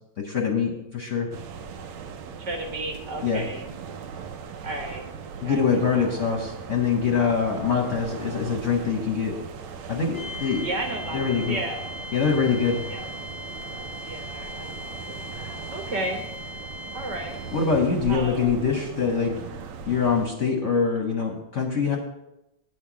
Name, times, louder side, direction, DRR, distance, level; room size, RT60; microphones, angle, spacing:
voice 1, 0.2-1.3 3.2-3.5 5.4-9.4 9.9-10.6 11.1-11.6 12.1-12.9 17.5-19.4 19.9-22.0, left 6 dB, 50° left, 1 dB, 1.0 m, -24 dB
sound 1, 1.3-20.3, right 6 dB, 80° right, 1.5 m, -38 dB
voice 2, 2.4-3.7 4.6-5.1 5.4-6.4 10.6-11.8 12.9-13.1 14.0-16.2 16.5-16.7 16.9-17.4 18.1-18.5, right 1 dB, 60° right, 3 dB, 1.6 m, -34 dB
sound 2, 10.1-17.9, left 1 dB, 35° right, 0.3 m, -39 dB
9.2 x 4.4 x 7.3 m, 0.90 s
omnidirectional pair, 2.3 m